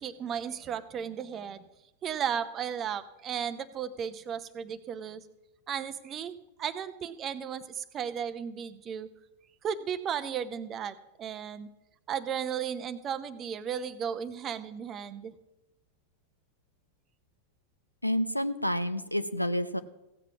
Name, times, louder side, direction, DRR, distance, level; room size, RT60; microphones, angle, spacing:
voice 1, 0.0-1.7 2.0-5.2 5.7-9.1 9.6-11.7 12.1-15.3, right 8 dB, 30° right, 13 dB, 0.8 m, -35 dB
voice 2, 18.0-19.8, equal, 90° left, 12 dB, 0.6 m, -29 dB
16.0 x 7.5 x 6.0 m, 0.95 s
figure-of-eight pair, 90°, 0 cm